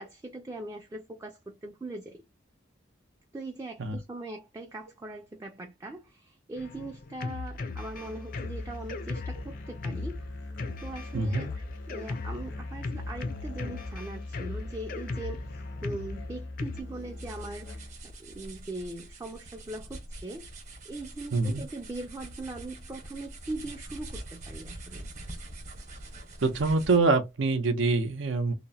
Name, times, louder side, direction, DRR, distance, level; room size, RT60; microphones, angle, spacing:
voice 1, 0.0-2.2 3.3-10.5 10.8-11.5 11.9-25.1, right 2 dB, 15° right, 0.4 m, -41 dB
Drum kit, 6.5-16.8, left 3 dB, 45° left, 0.4 m, -38 dB
Musical instrument, 8.0-18.1, left 2 dB, 75° left, 0.8 m, -41 dB
voice 2, 11.1-11.5 21.3-21.6 26.4-28.5, right 3 dB, 85° right, 0.7 m, -25 dB
sound 1, 16.8-27.2, right 2 dB, 40° right, 0.9 m, -44 dB
2.8 x 2.1 x 2.7 m
head